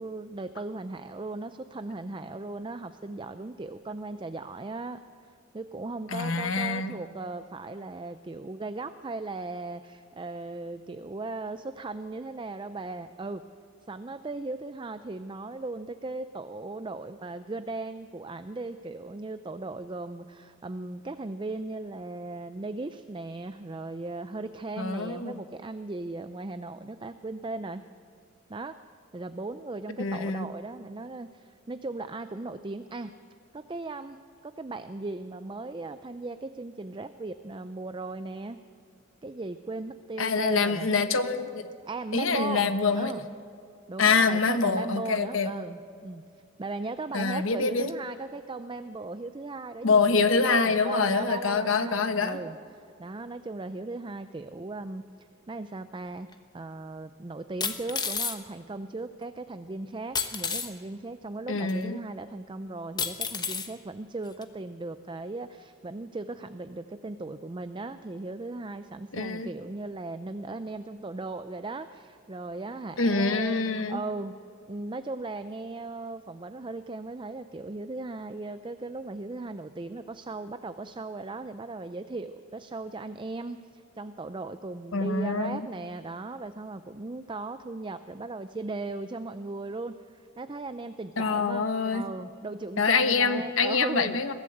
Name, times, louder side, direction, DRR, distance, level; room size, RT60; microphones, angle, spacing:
voice 1, 0.0-13.4 13.9-27.8 28.5-28.8 29.1-33.1 33.5-34.2 34.4-38.6 39.2-40.9 41.9-43.3 43.9-46.2 46.6-50.1 50.3-55.1 55.5-56.3 56.5-74.4 74.7-94.2, right 3 dB, 25° right, 10 dB, 0.5 m, -37 dB
voice 2, 6.1-6.9 24.8-25.4 30.0-30.4 40.2-41.7 42.1-43.1 44.0-45.5 47.1-47.9 49.8-52.4 61.5-62.0 69.1-69.5 73.0-74.0 84.9-85.7 91.2-92.0 92.8-94.3, left 4 dB, 90° left, 10 dB, 1.2 m, -25 dB
sound 1, 56.3-56.4 57.6-58.4 60.2-60.7 61.7-61.8 63.0-63.7 64.4-64.5, left 6 dB, 20° left, 1.1 m, -30 dB
22.5 x 14.5 x 7.9 m, 2.5 s
head